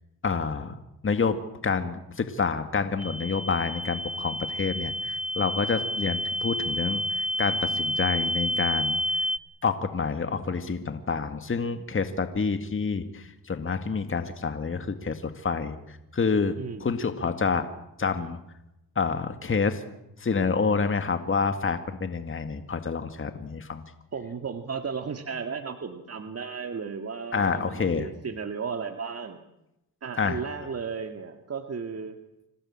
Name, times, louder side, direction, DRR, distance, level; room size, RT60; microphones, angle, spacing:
voice 1, 0.2-0.8 1.0-9.0 9.6-16.5 16.8-17.7 18.0-18.4 19.0-19.8 20.2-23.8 27.3-28.1 30.2-30.4, left 5 dB, 35° left, 8 dB, 2.1 m, -28 dB
sound 1, 3.0-9.4, equal, 5° right, 1.2 m, -29 dB
voice 2, 24.1-29.4 30.0-32.2, right 5 dB, 45° right, 6 dB, 2.1 m, -34 dB
26.0 x 17.5 x 8.9 m, 0.89 s
cardioid pair, 85°, 35 cm